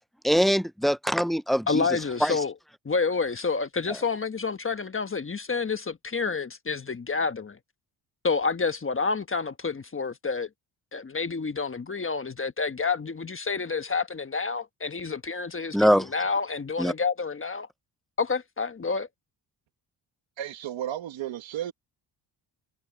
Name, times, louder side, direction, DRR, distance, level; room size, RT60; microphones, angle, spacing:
voice 1, 0.2-1.8 2.2-2.4 15.7-16.1 16.8-16.9, equal, ahead, 0.4 m, -22 dB
voice 2, 1.7-2.5 2.8-7.6 8.2-10.5 10.9-17.7 18.2-19.1, left 4 dB, 25° left, 1.3 m, -29 dB
voice 3, 20.4-21.7, right 11 dB, 75° right, 1.8 m, -33 dB
cardioid pair, 75°, 46 cm